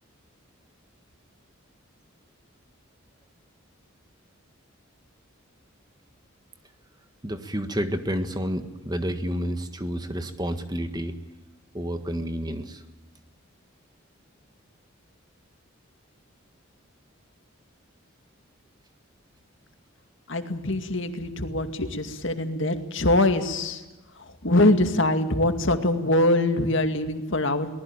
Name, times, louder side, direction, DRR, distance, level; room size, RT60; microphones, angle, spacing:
voice 1, 7.2-11.2 11.7-12.8, equal, 20° right, 8 dB, 1.6 m, -30 dB
voice 2, 20.3-23.8 24.4-27.7, left 1 dB, 60° left, 7 dB, 2.2 m, -23 dB
23.5 x 19.5 x 8.9 m, 1.1 s
head